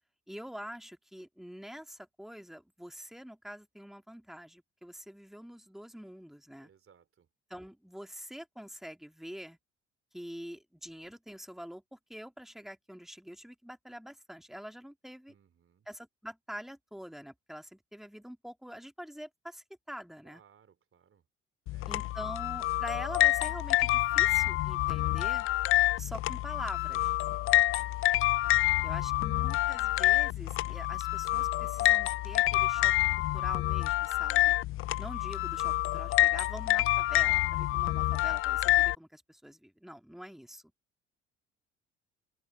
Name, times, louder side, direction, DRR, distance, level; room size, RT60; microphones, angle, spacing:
voice 1, 0.3-6.7 7.5-9.6 10.1-15.3 15.9-20.4 21.9-25.5 26.0-27.1 28.8-32.9 33.3-34.6 35.0-40.6, equal, ahead, 3.0 m, -45 dB
voice 2, 6.6-7.3 15.3-15.9 20.2-21.2 21.7-22.2 27.2-27.8 28.8-29.5, right 7 dB, 40° right, 3.7 m, -63 dB
sound 1, 21.7-38.9, left 17 dB, 40° left, 0.4 m, -27 dB
open air
figure-of-eight pair, 50°, 35 cm